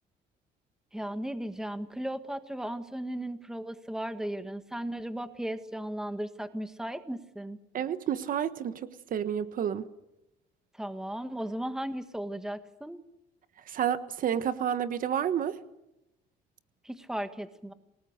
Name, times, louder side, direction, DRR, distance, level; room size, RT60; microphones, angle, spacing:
voice 1, 0.9-7.6 10.7-13.0 16.8-17.7, right 1 dB, 5° right, 10 dB, 1.6 m, -36 dB
voice 2, 7.7-9.8 13.7-15.6, right 9 dB, 55° right, 13 dB, 1.3 m, -30 dB
27.5 x 19.0 x 6.7 m, 0.90 s
cardioid pair, 110°, 17 cm